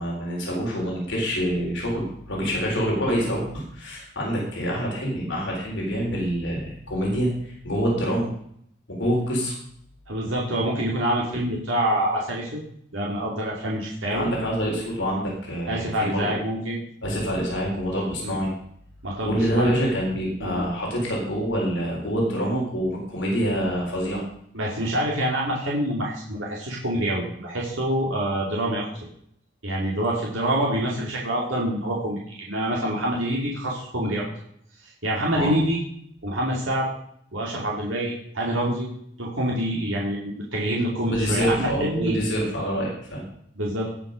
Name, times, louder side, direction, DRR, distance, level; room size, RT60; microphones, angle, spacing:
voice 1, 0.0-8.3 8.9-9.6 14.1-16.4 17.0-18.5 19.2-24.2 35.3-35.6 41.0-43.2, equal, 65° left, -2 dB, 3.9 m, -26 dB
voice 2, 10.1-12.6 12.9-14.3 15.7-16.8 18.2-18.4 19.0-19.7 20.4-20.6 24.5-29.1 29.6-34.2 34.8-35.8 36.2-36.9 37.3-38.9 39.2-42.2 43.6-43.9, right 1 dB, 80° right, -4 dB, 2.6 m, -26 dB
18.0 x 6.1 x 5.2 m, 0.69 s
head